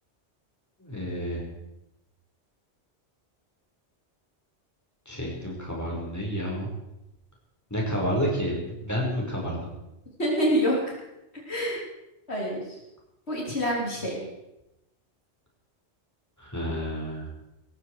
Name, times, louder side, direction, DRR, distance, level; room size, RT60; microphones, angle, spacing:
voice 1, 0.8-1.4 5.1-6.7 7.7-9.6 16.4-17.3, equal, 15° left, -3 dB, 5.3 m, -30 dB
voice 2, 10.2-10.8 11.5-11.8 12.3-12.6 13.3-14.2, equal, 65° left, -3 dB, 4.1 m, -26 dB
19.0 x 14.5 x 4.9 m, 0.91 s
omnidirectional pair, 1.2 m